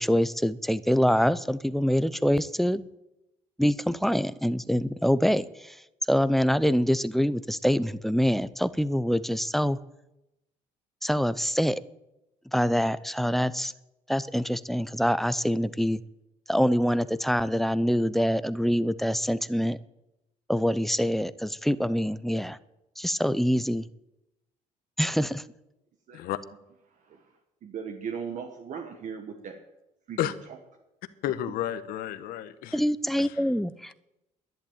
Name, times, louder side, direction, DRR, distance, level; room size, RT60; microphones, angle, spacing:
voice 1, 0.0-2.9 3.6-5.8 6.1-9.8 11.0-11.8 12.5-13.7 14.1-16.0 16.5-19.8 20.5-22.6 23.0-23.9 25.0-25.4 32.7-34.0, equal, ahead, 16 dB, 0.6 m, -25 dB
voice 2, 26.9-27.3 27.6-29.6 30.1-30.3, right 6 dB, 55° right, 5 dB, 1.5 m, -38 dB
voice 3, 31.2-32.8 33.2-33.4, left 12 dB, 80° left, 12 dB, 1.1 m, -31 dB
11.5 x 10.5 x 8.9 m, 0.91 s
cardioid pair, 95°, 15 cm